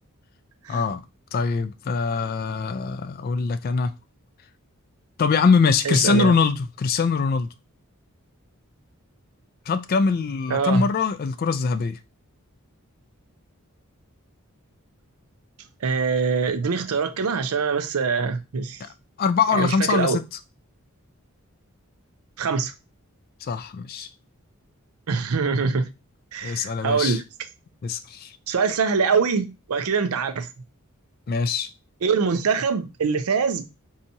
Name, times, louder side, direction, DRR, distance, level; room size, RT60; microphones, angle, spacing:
voice 1, 0.7-1.0 1.3-3.9 5.2-7.5 9.7-12.0 18.8-18.9 19.2-20.2 23.4-24.1 26.4-27.2 27.8-28.3 31.3-31.7, left 5 dB, 40° left, 0.3 m, -23 dB
voice 2, 5.8-6.3 10.5-10.9 15.8-18.8 19.5-20.2 22.4-22.7 25.1-25.9 26.3-27.2 28.5-30.5 32.0-33.6, right 5 dB, 80° right, 0.5 m, -23 dB
4.5 x 2.7 x 2.7 m
head